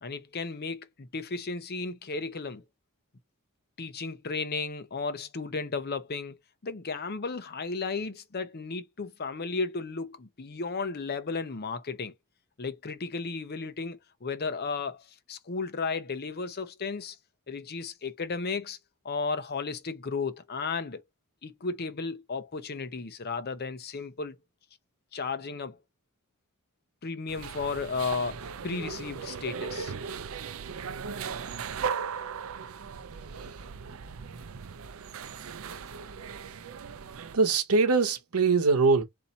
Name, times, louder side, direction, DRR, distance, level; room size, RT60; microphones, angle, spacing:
voice 1, 0.0-2.6 3.8-6.4 6.6-12.1 12.6-17.2 17.5-18.8 19.0-21.0 21.4-24.4 25.1-25.8 27.0-29.9, left 4 dB, 45° left, 0.7 m, -34 dB
sound 1, 27.3-37.4, right 6 dB, 65° right, 0.5 m, -38 dB
voice 2, 33.4-34.0 37.3-39.0, right 4 dB, 85° right, 0.8 m, -24 dB
4.2 x 2.7 x 4.1 m
head